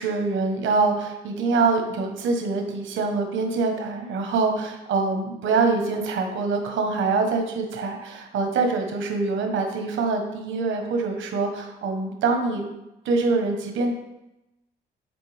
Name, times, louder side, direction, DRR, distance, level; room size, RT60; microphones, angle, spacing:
voice 1, 0.0-12.6 13.0-13.9, right 4 dB, 75° right, 3 dB, 1.2 m, -24 dB
9.0 x 4.2 x 3.4 m, 0.91 s
cardioid pair, 90°, 20 cm